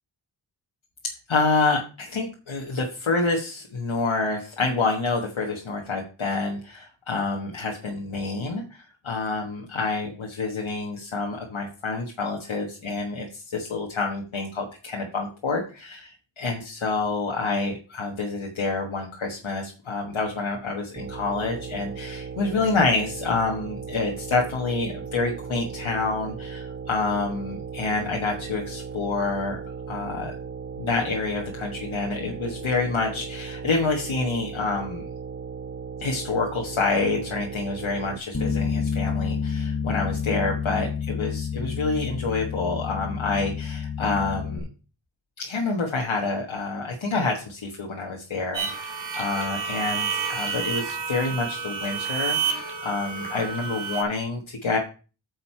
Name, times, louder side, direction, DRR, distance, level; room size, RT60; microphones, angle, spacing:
voice 1, 1.3-16.0 16.4-29.6 29.9-30.3 30.8-35.1 36.0-44.7 45.4-54.8, left 3 dB, 75° left, 0 dB, 1.5 m, -27 dB
sound 1, 21.0-38.2, right 5 dB, 25° right, 0.8 m, -37 dB
Bass guitar, 38.3-44.6, left 6 dB, 30° left, 1.3 m, -29 dB
sound 2, 48.5-54.0, right 6 dB, 60° right, 2.4 m, -30 dB
8.9 x 6.6 x 4.5 m, 0.35 s
wide cardioid pair, 50°, 48 cm